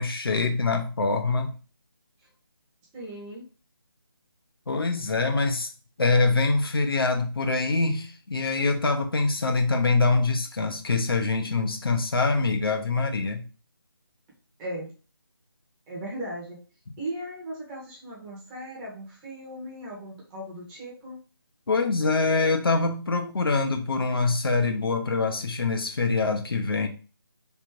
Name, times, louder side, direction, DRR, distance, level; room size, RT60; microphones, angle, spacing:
voice 1, 0.0-1.6 4.7-5.7 6.0-13.5 21.7-26.9, left 3 dB, 70° left, 5 dB, 0.9 m, -24 dB
voice 2, 2.9-3.4 14.6-14.9 15.9-16.6 17.0-21.2, right 1 dB, 10° right, -4 dB, 0.8 m, -37 dB
3.5 x 2.5 x 4.4 m, 0.35 s
figure-of-eight pair, 165°, 13 cm